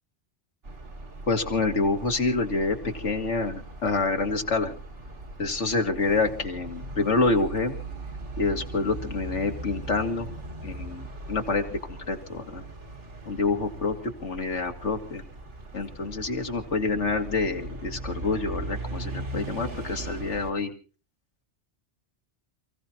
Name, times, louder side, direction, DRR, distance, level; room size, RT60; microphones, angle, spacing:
sound 1, 0.6-20.5, right 2 dB, 80° right, 2.3 m, -39 dB
voice 1, 1.3-4.7 5.4-7.8 8.4-10.3 10.6-11.8 12.1-12.6 13.3-14.0 14.2-15.2 15.7-20.7, left 3 dB, 90° left, 4 dB, 2.3 m, -27 dB
29.0 x 16.5 x 2.9 m, 0.37 s
omnidirectional pair, 1.2 m